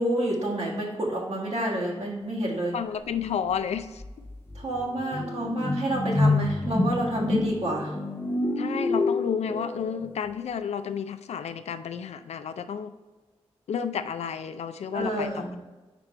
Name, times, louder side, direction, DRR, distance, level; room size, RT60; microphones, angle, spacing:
voice 1, 0.0-2.8 4.6-7.9 14.9-15.6, right 1 dB, 70° right, -3 dB, 1.8 m, -29 dB
voice 2, 2.7-4.0 8.6-12.9 13.7-15.6, left 7 dB, 80° left, 11 dB, 0.4 m, -31 dB
sound 1, 3.5-3.6 4.0-10.1, left 2 dB, 20° left, 0.6 m, -27 dB
5.1 x 4.5 x 4.3 m, 1.2 s
cardioid pair, 45°, 11 cm